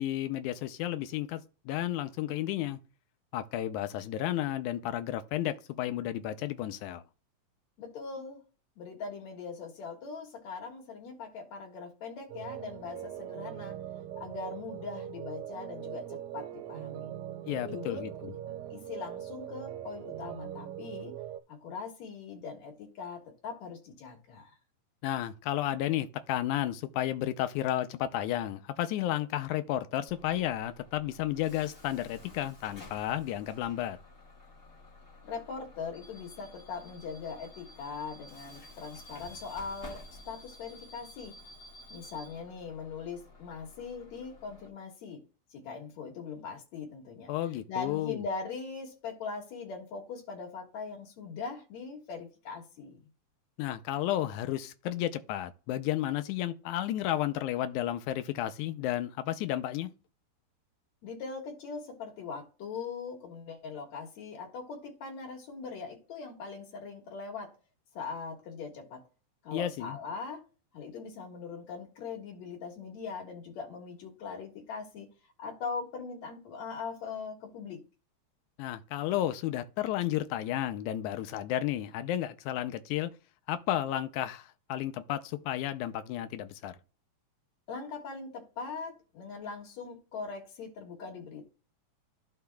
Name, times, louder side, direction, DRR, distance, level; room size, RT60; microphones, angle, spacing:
voice 1, 0.0-2.8 3.3-7.0 17.5-18.3 25.0-34.0 47.3-48.2 53.6-59.9 69.5-70.0 78.6-83.1 83.5-86.8, left 12 dB, 90° left, 2.1 m, -32 dB
voice 2, 7.8-8.4 8.8-13.8 14.2-17.1 17.7-18.0 18.4-21.2 21.5-24.6 35.2-41.3 41.9-45.2 45.5-47.3 47.7-53.0 61.0-67.6 67.9-69.0 69.4-70.4 70.7-75.1 75.4-77.8 87.7-91.5, left 5 dB, 65° left, 2.9 m, -41 dB
sound 1, 12.3-21.4, right 11 dB, 80° right, 1.9 m, -41 dB
Bus / Alarm, 30.1-44.7, left 2 dB, 30° left, 1.7 m, -52 dB
14.0 x 4.7 x 2.3 m
omnidirectional pair, 3.4 m